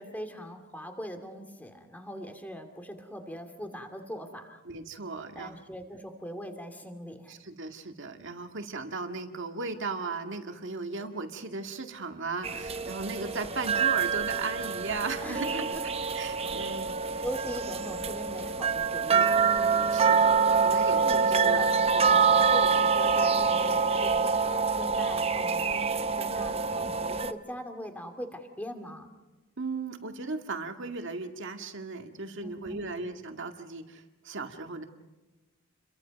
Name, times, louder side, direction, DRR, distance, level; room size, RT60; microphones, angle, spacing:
voice 1, 0.0-4.6 5.3-7.3 15.2-15.8 17.2-19.5 21.0-24.3 24.8-25.9 26.2-29.1 32.4-32.9, equal, 10° left, 6 dB, 2.4 m, -41 dB
voice 2, 4.6-5.6 7.3-15.7 16.1-17.3 19.6-21.7 29.6-34.8, right 3 dB, 60° right, 5 dB, 2.0 m, -37 dB
sound 1, 12.4-27.3, right 5 dB, 30° right, 0.7 m, -26 dB
29.5 x 23.0 x 5.3 m, 1.2 s
head